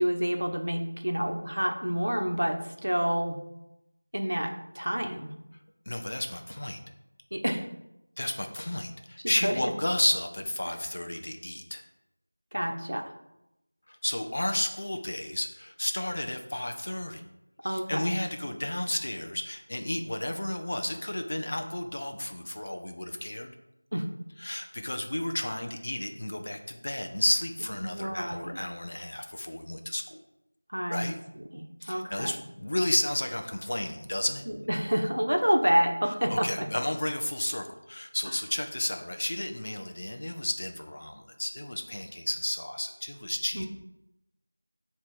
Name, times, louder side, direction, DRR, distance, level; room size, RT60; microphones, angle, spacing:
voice 1, 0.0-3.4 4.1-5.3 7.3-7.7 9.2-9.7 12.5-13.0 17.6-18.2 23.9-24.1 27.7-28.5 30.7-31.1 31.3-32.4 34.5-36.7 38.3-38.4 43.5-43.7, equal, 85° right, 4 dB, 1.0 m, -28 dB
voice 2, 5.9-6.8 8.2-11.8 13.9-17.2 17.6-23.5 24.4-30.2 30.9-31.2 31.8-34.4 36.3-43.7, left 1 dB, 35° left, 5 dB, 0.5 m, -32 dB
7.4 x 2.9 x 4.8 m, 0.88 s
figure-of-eight pair, 180°, 0 cm